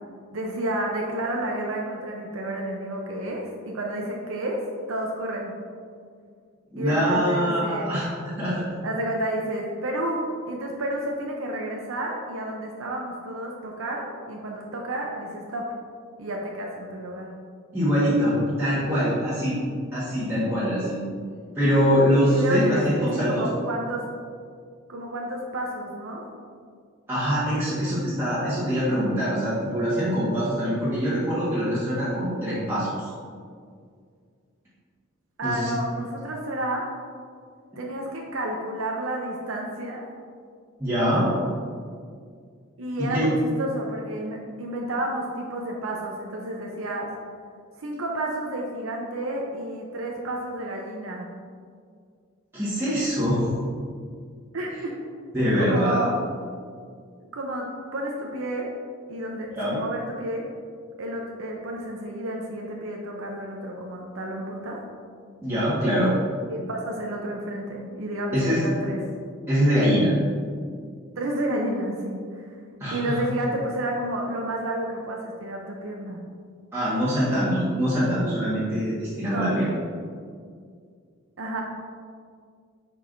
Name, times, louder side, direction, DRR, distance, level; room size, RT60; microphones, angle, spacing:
voice 1, 0.3-4.6 4.9-5.5 6.8-7.9 8.8-15.7 16.2-17.3 22.2-24.0 24.9-26.3 35.4-36.9 37.8-40.1 42.8-47.1 47.8-51.3 54.5-55.0 55.5-56.1 57.3-58.7 59.1-60.4 61.0-64.8 66.5-69.0 71.2-72.5 72.9-76.2 79.2-79.5 81.4-81.6, right 1 dB, 80° right, -1 dB, 0.7 m, -30 dB
voice 2, 6.7-8.6 17.7-19.6 19.9-21.0 21.5-23.4 27.1-33.1 35.4-35.7 40.8-41.3 43.0-43.3 52.5-53.5 55.3-56.0 59.6-59.8 65.4-66.1 68.3-68.6 69.5-70.1 72.8-73.1 76.7-79.6, equal, 10° right, -12 dB, 1.5 m, -23 dB
9.7 x 4.7 x 2.6 m, 2.1 s
head